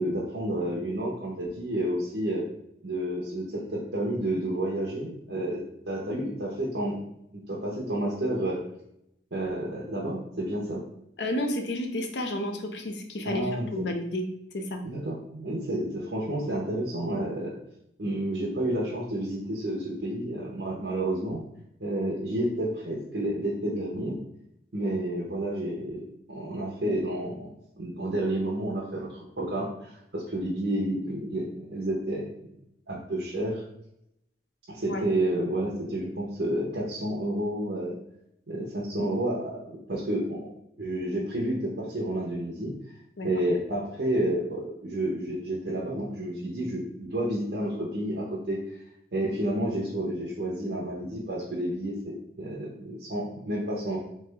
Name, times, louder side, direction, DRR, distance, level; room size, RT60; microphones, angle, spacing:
voice 1, 0.0-2.4 2.8-7.0 7.3-8.6 9.3-10.8 13.2-13.9 14.8-17.5 18.0-21.4 21.8-24.2 24.7-27.5 27.8-32.5 32.9-33.6 34.7-37.9 38.5-40.5 40.8-42.7 43.2-48.8 49.1-54.0, right 1 dB, 70° right, -5 dB, 0.8 m, -30 dB
voice 2, 11.2-14.2 14.5-14.8 34.9-35.0 43.2-43.4, left 1 dB, 75° left, 4 dB, 0.7 m, -31 dB
3.7 x 3.3 x 3.3 m, 0.79 s
head